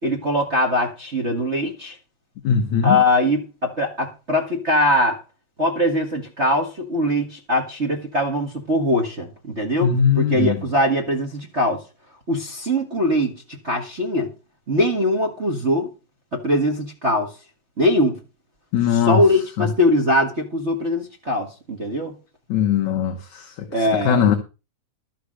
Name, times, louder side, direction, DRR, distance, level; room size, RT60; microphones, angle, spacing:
voice 1, 0.0-1.9 2.8-5.2 5.6-11.8 12.3-13.3 13.6-14.3 14.7-15.9 16.3-17.3 17.8-18.2 18.9-22.1 23.7-24.3, left 1 dB, 40° right, 1.0 m, -21 dB
voice 2, 2.4-3.0 9.8-10.6 18.7-19.2 19.6-19.7 22.5-23.1 24.1-24.4, left 7 dB, 65° left, 2.3 m, -19 dB
12.5 x 6.7 x 6.3 m
omnidirectional pair, 4.0 m